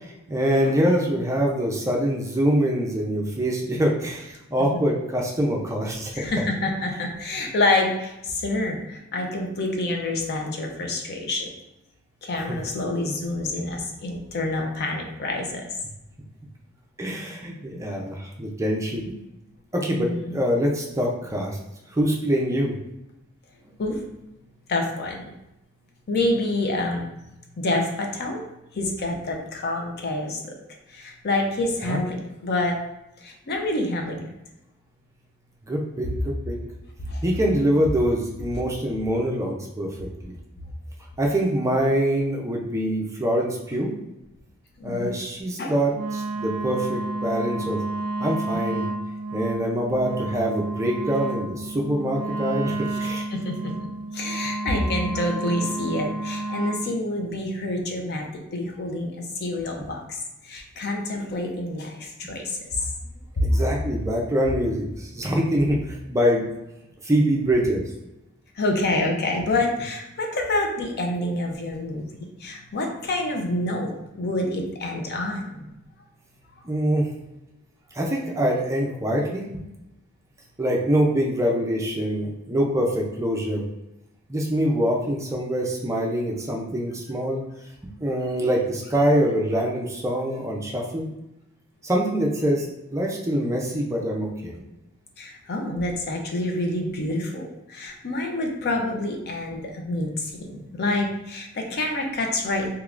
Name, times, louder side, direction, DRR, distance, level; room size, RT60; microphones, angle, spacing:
voice 1, 0.3-6.3 12.5-12.6 17.0-19.1 19.7-21.6 21.9-22.8 31.8-32.0 35.7-36.6 37.2-40.3 41.2-43.9 44.8-47.8 48.2-48.8 49.3-53.3 63.4-66.5 67.0-67.8 76.7-77.1 77.9-79.6 80.6-83.6 84.3-87.4 88.0-91.1 91.8-94.5, equal, 15° right, -1 dB, 0.5 m, -24 dB
voice 2, 6.1-11.5 12.2-15.7 19.9-20.4 23.8-24.0 24.7-25.2 26.1-27.1 27.6-28.4 28.7-30.5 30.9-32.8 33.2-34.2 37.0-37.2 44.8-45.1 45.6-45.7 53.3-62.9 63.4-63.6 68.6-72.0 72.4-75.7 95.2-102.7, left 2 dB, 50° left, 2 dB, 0.5 m, -27 dB
Wind instrument woodwind instrument, 45.9-56.9, right 2 dB, 75° right, 0.4 m, -30 dB
3.5 x 2.9 x 2.4 m, 0.90 s
head